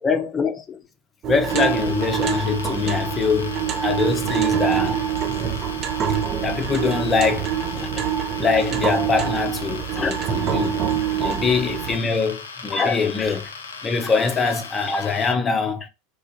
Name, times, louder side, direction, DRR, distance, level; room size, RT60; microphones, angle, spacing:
voice 1, 0.0-0.8 1.3-5.0 6.4-8.1 8.4-10.8 11.1-13.5 13.8-15.9, left 5 dB, 20° left, 0.6 m, -23 dB
sound 1, 1.2-12.0, right 9 dB, 35° right, 0.5 m, -25 dB
sound 2, 1.5-15.3, left 4 dB, 70° left, 0.4 m, -38 dB
3.1 x 2.5 x 2.6 m
figure-of-eight pair, 80°, 0 cm